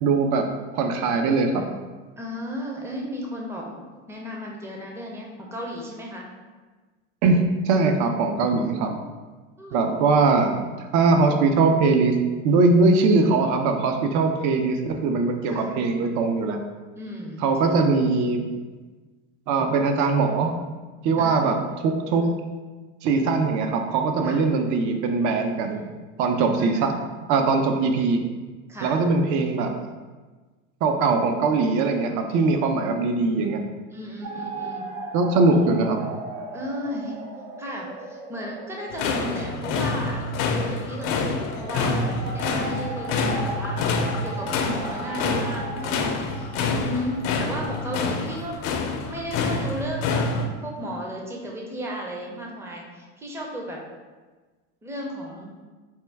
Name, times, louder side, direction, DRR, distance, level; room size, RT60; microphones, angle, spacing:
voice 1, 0.0-0.4 0.7-1.6 7.2-7.4 7.7-8.9 9.7-10.5 10.8-12.2 12.4-16.6 17.4-18.5 19.5-20.5 21.0-22.2 23.0-25.8 26.2-26.9 27.3-28.2 28.8-29.7 30.8-33.6 35.1-36.1, right 3 dB, 50° right, 5 dB, 0.6 m, -21 dB
voice 2, 2.2-6.3 8.7-9.1 9.6-10.0 15.5-15.7 17.0-17.5 21.2-21.4 24.2-24.4 25.7-26.0 26.5-27.0 28.7-29.0 32.7-33.2 33.9-34.9 36.5-37.2 37.6-40.2 40.5-48.6 49.1-53.8 54.8-55.5, equal, 5° right, -1 dB, 0.6 m, -35 dB
sound 1, 34.2-48.2, right 3 dB, 70° right, 0.9 m, -38 dB
sound 2, 38.9-50.5, left 3 dB, 55° left, 0.5 m, -27 dB
4.4 x 2.2 x 3.3 m, 1.3 s
supercardioid pair, 105°, 38 cm